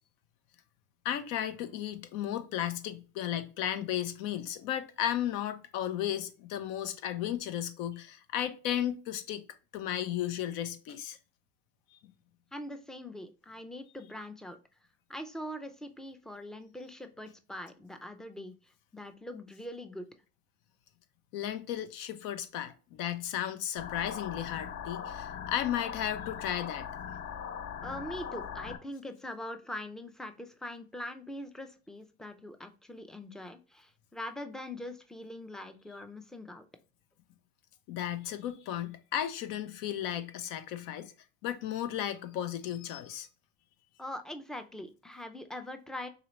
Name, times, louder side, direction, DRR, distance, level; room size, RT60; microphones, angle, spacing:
voice 1, 1.0-9.4 9.7-11.2 11.9-12.0 21.3-26.9 37.9-41.1 41.4-43.3, left 11 dB, 75° left, 0.7 m, -34 dB
voice 2, 12.5-14.6 15.1-20.1 27.8-36.7 44.0-46.1, left 1 dB, ahead, 0.4 m, -42 dB
sound 1, 23.8-28.8, left 8 dB, 40° left, 0.7 m, -40 dB
3.9 x 2.9 x 3.1 m
supercardioid pair, 105°, 33 cm